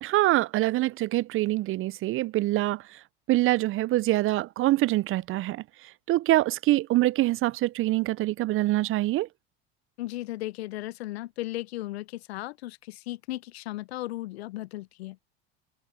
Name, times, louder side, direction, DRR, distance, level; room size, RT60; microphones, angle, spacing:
voice 1, 0.0-2.8 3.3-5.6 6.1-9.3, right 17 dB, 40° right, 0.6 m, -25 dB
voice 2, 10.0-15.2, left 17 dB, 80° left, 0.6 m, -36 dB
hypercardioid pair, 80°, 31 cm